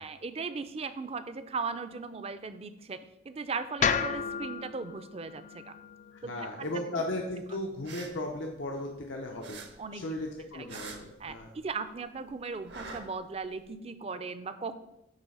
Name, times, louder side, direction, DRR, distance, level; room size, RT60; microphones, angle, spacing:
voice 1, 0.0-3.0 3.2-5.7 6.2-6.7 9.8-10.1 10.5-10.8 11.2-14.7, right 4 dB, 35° right, 11 dB, 0.4 m, -38 dB
sound 1, 3.8-8.0, left 6 dB, 40° left, 0.3 m, -34 dB
voice 2, 6.1-9.6 9.9-11.5, left 1 dB, 90° left, 1 dB, 0.8 m, -36 dB
sound 2, 7.7-9.1 9.4-11.8 12.1-13.7, right 4 dB, 65° right, 0.9 m, -46 dB
8.9 x 3.2 x 5.5 m, 0.89 s
head